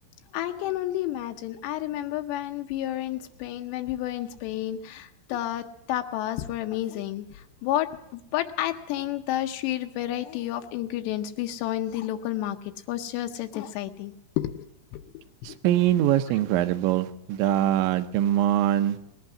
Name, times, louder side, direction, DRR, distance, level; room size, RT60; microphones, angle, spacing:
voice 1, 0.3-12.6 12.9-14.7 14.9-15.2 15.5-15.6, left 13 dB, 85° left, 6 dB, 2.4 m, -31 dB
voice 2, 15.4-19.0, right 12 dB, 80° right, 9 dB, 2.8 m, -23 dB
19.0 x 11.5 x 5.9 m, 0.86 s
omnidirectional pair, 5.8 m